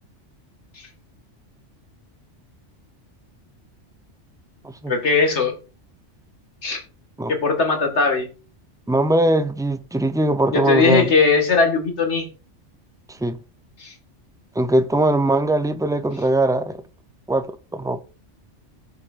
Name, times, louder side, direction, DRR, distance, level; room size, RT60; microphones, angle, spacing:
voice 1, 4.9-5.5 6.6-6.8 7.3-8.3 10.5-12.3 13.8-13.9, left 4 dB, 65° left, 2.2 m, -19 dB
voice 2, 8.9-11.1 13.1-13.4 14.5-16.8 17.3-18.0, right 1 dB, 5° right, 0.3 m, -21 dB
18.5 x 6.9 x 2.5 m
omnidirectional pair, 1.3 m